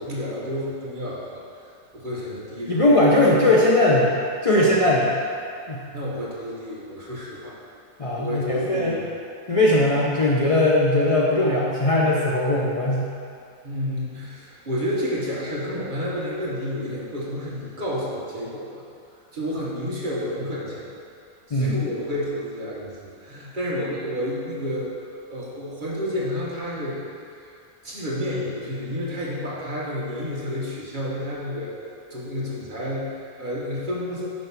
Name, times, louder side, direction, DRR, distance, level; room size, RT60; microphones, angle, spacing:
voice 1, 0.0-1.4 1.9-2.8 3.3-3.4 5.9-7.6 8.2-9.1 13.6-18.8 19.3-20.9 21.5-27.5 27.8-34.3, equal, 35° right, -6 dB, 1.1 m, -30 dB
voice 2, 2.7-4.1 4.4-5.1 5.7-5.8 8.0-9.0 9.5-13.1 21.5-21.7, left 1 dB, 45° left, -5 dB, 0.4 m, -19 dB
5.3 x 4.6 x 5.7 m, 2.5 s
omnidirectional pair, 1.6 m